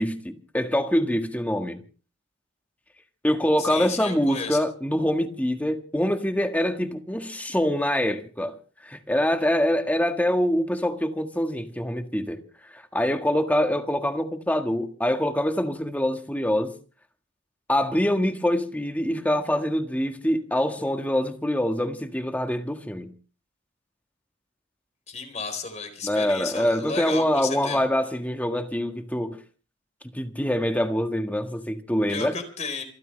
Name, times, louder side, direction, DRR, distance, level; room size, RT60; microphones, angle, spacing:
voice 1, 0.0-1.8 3.2-8.6 8.8-12.4 12.7-16.8 17.7-23.1 26.0-29.4 30.1-32.3, equal, 10° left, 1.7 m, -25 dB
voice 2, 3.6-4.6 25.1-27.8 32.1-32.8, left 4 dB, 35° left, 4.4 m, -33 dB
27.5 x 13.5 x 3.3 m
head